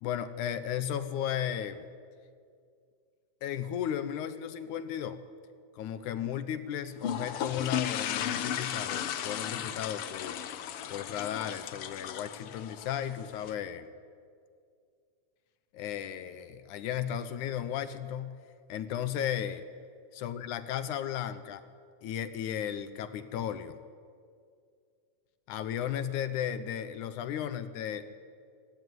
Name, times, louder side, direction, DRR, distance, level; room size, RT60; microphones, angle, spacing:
voice 1, 0.0-1.9 3.4-5.2 5.7-10.4 10.9-13.9 15.7-18.3 18.7-19.7 20.1-21.6 22.0-23.8 25.5-28.1, left 9 dB, 80° left, 11 dB, 2.4 m, -35 dB
sound 1, 7.0-13.5, left 9 dB, 60° left, 1.6 m, -35 dB
25.5 x 19.0 x 9.4 m, 2.2 s
omnidirectional pair, 3.5 m